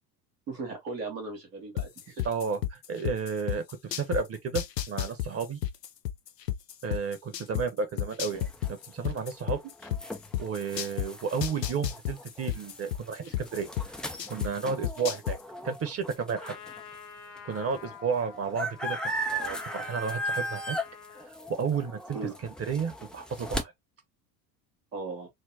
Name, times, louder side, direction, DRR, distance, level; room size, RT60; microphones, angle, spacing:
voice 1, 0.5-2.3 22.1-22.4 24.9-25.3, right 3 dB, 80° right, 2.1 m, -37 dB
sound 1, 1.8-4.2 4.6-7.6 8.0-11.1 11.4-14.5 14.8-15.4, left 11 dB, 80° left, 0.7 m, -31 dB
voice 2, 2.2-5.6 6.8-9.7 10.4-13.7 14.3-15.4 15.6-16.6 17.4-19.0 19.3-20.8 21.5-22.2 22.7-23.7, right 5 dB, 30° right, 1.1 m, -32 dB
sound 2, 8.3-16.8 17.4-17.5 17.6-23.6, equal, ahead, 0.4 m, -37 dB
Trumpet, 16.3-21.3, left 6 dB, 60° left, 1.0 m, -47 dB
4.5 x 2.1 x 2.8 m
hypercardioid pair, 75°, 48 cm